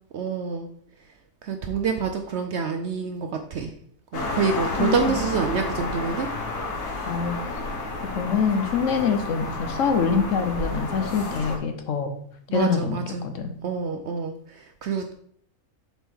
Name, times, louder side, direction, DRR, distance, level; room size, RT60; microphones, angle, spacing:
voice 1, 0.1-0.7 1.4-3.7 4.1-6.3 12.5-13.3 13.6-15.1, right 5 dB, 65° right, 5 dB, 0.7 m, -27 dB
sound 1, 4.1-11.6, left 3 dB, 90° left, 1.7 m, -31 dB
voice 2, 4.8-5.2 7.1-7.4 8.2-12.1 12.5-13.6, left 6 dB, 65° left, 7 dB, 0.9 m, -25 dB
6.9 x 4.3 x 3.6 m, 0.65 s
omnidirectional pair, 1.6 m